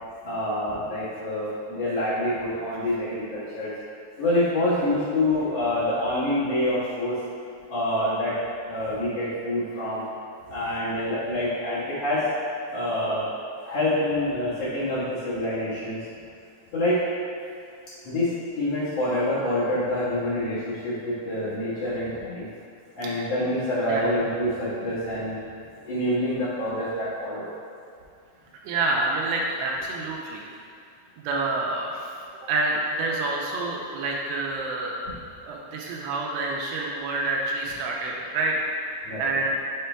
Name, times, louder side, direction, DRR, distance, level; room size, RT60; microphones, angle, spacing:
voice 1, 0.2-3.7 4.2-7.2 7.7-8.3 8.7-10.0 10.5-12.2 12.7-13.3 13.6-16.0 16.7-17.0 18.0-22.5 23.0-25.4 25.8-27.5 39.0-39.3, left 1 dB, 75° left, -11 dB, 1.4 m, -26 dB
voice 2, 28.7-30.4 31.2-32.1 32.4-34.9 35.4-39.6, right 2 dB, 85° right, -2 dB, 2.7 m, -28 dB
7.7 x 3.4 x 4.4 m, 2.4 s
omnidirectional pair, 5.1 m